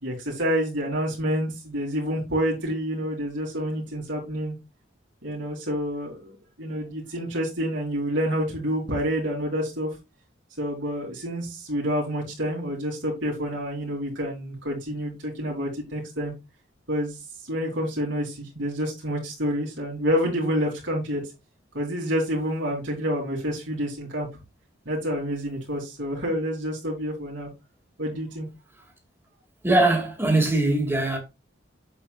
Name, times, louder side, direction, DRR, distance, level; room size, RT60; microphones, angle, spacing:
voice 1, 0.0-4.6 5.2-9.9 10.6-16.3 16.9-17.1 17.5-21.2 21.7-24.3 24.8-27.5 28.0-28.5, equal, 80° right, 3.1 m, -28 dB
voice 2, 29.6-31.2, right 2 dB, 15° right, 2.2 m, -21 dB
7.9 x 7.5 x 2.4 m
head